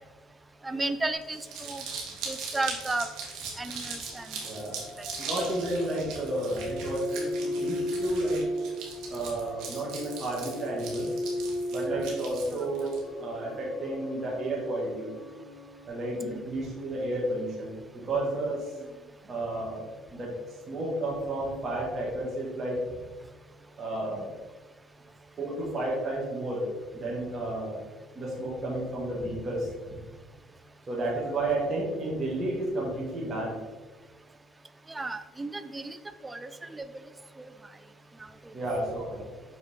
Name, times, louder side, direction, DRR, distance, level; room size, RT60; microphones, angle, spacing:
voice 1, 0.6-1.8 2.3-3.1 3.6-4.3 5.0-5.1 34.9-36.0 36.2-36.8 37.4-37.5, right 2 dB, 15° right, 11 dB, 0.4 m, -33 dB
Crumpling crinkling, 1.2-13.0, right 5 dB, 70° right, 1.8 m, -40 dB
sound 1, 4.0-15.9, left 1 dB, 65° left, 1.9 m, -36 dB
voice 2, 4.4-4.8 5.2-8.4 9.1-11.1 11.7-15.1 15.8-17.7 18.0-18.7 19.2-19.8 20.1-20.3 20.7-22.8 23.8-24.3 25.4-26.7 26.9-27.8 28.2-29.9 30.9-33.5 38.5-39.3, right 1 dB, 35° right, -5 dB, 1.9 m, -32 dB
6.4 x 4.7 x 3.7 m, 1.3 s
supercardioid pair, 85°, 0 cm